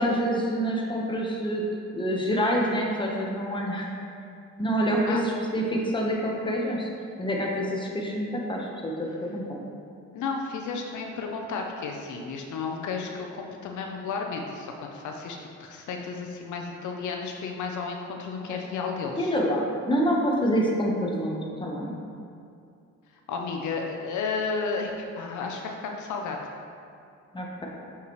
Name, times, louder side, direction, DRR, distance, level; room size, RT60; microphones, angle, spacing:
voice 1, 0.0-1.6 1.9-3.9 4.6-6.9 7.2-9.6 18.5-18.6 19.2-22.0 27.3-27.7, equal, 15° left, -2 dB, 1.1 m, -27 dB
voice 2, 10.1-19.3 23.3-26.4, left 4 dB, 75° left, 2 dB, 0.7 m, -33 dB
6.5 x 5.7 x 3.1 m, 2.4 s
cardioid pair, 90°, 30 cm